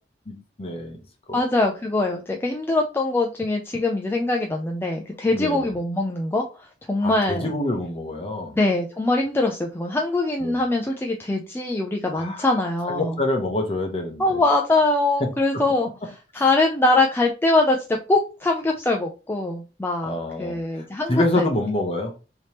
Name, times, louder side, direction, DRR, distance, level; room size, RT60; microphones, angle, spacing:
voice 1, 0.3-1.0 1.3-1.4 5.3-5.7 7.0-8.6 10.4-10.6 12.1-12.5 12.9-14.4 15.2-15.6 20.0-22.1, left 1 dB, 35° left, 0.8 m, -27 dB
voice 2, 1.3-7.5 8.5-13.2 14.2-15.9 16.3-20.1 20.4-21.5, left 2 dB, 15° left, 0.4 m, -23 dB
3.3 x 2.8 x 2.9 m
head